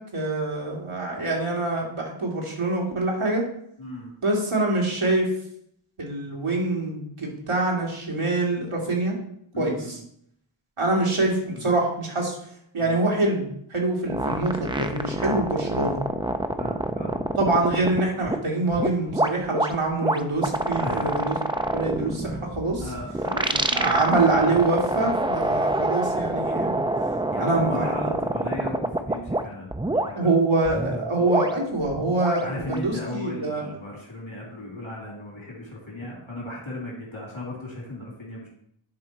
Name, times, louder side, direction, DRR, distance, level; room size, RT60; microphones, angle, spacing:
voice 1, 0.1-3.4 4.2-5.3 6.0-9.1 9.6-10.0 10.8-12.4 12.7-16.0 17.4-21.3 21.7-22.9 23.7-26.8 27.4-28.2 30.1-33.6, right 2 dB, 80° right, -2 dB, 2.2 m, -25 dB
voice 2, 3.8-4.1 9.5-10.0 11.5-11.7 12.8-13.0 16.6-17.2 20.8-21.3 22.8-24.6 25.5-25.6 27.3-30.3 32.4-38.5, left 1 dB, 70° left, -4 dB, 2.7 m, -36 dB
sound 1, 14.1-18.3 18.7-29.4 29.7-30.1 30.6-32.9, right 1 dB, 10° right, 0.4 m, -26 dB
10.0 x 3.8 x 4.4 m, 0.70 s
wide cardioid pair, 60°, 49 cm